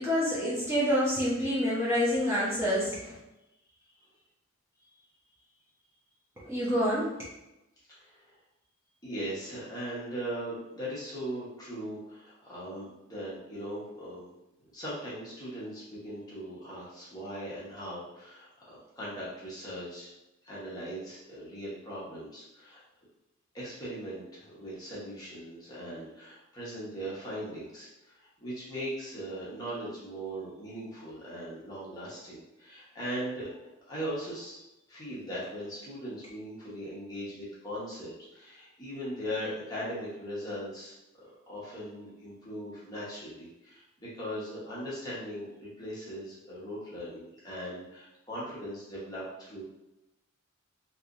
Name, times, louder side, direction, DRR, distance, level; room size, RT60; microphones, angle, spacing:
voice 1, 0.0-3.2 6.4-7.1, equal, 15° right, -9 dB, 0.8 m, -27 dB
voice 2, 7.9-8.4 9.0-14.3 14.7-20.1 20.4-22.8 23.5-33.5 33.9-34.6 34.9-49.6, equal, 20° left, -8 dB, 1.1 m, -39 dB
3.2 x 2.9 x 2.5 m, 0.92 s
head